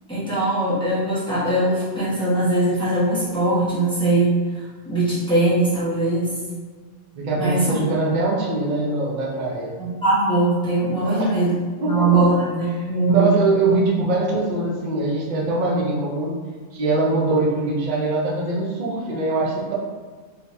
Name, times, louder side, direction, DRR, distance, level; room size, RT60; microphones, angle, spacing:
voice 1, 0.1-4.4 4.8-6.3 7.4-7.8 9.8-11.5 11.8-13.3, right 2 dB, 5° left, -11 dB, 1.1 m, -21 dB
voice 2, 7.1-9.8 11.0-11.3 11.8-12.3 13.0-16.4 16.7-19.7, right 2 dB, 45° right, -3 dB, 0.7 m, -22 dB
4.0 x 2.8 x 2.6 m, 1.5 s
omnidirectional pair, 1.2 m